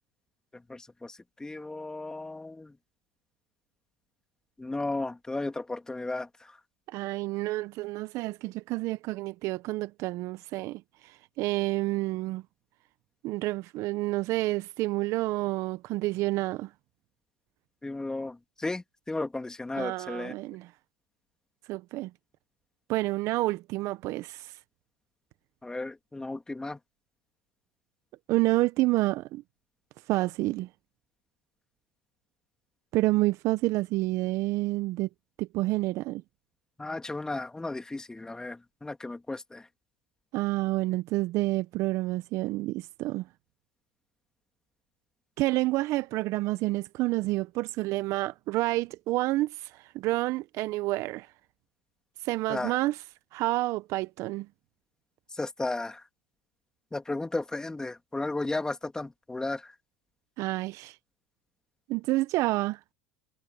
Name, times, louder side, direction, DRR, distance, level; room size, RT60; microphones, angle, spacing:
voice 1, 0.7-2.7 4.6-6.5 17.8-20.3 25.6-26.8 36.8-39.7 52.5-52.8 55.4-56.0 56.9-59.7, left 2 dB, 10° left, 2.7 m, -34 dB
voice 2, 6.9-12.4 13.2-16.7 19.8-20.7 21.7-22.1 22.9-24.6 28.3-29.4 30.1-30.7 32.9-35.1 35.4-36.2 40.3-43.3 45.4-51.3 52.2-53.0 53.3-54.5 60.4-61.0 61.9-62.8, right 19 dB, 55° right, 1.0 m, -29 dB
hypercardioid pair, 85°, 6 cm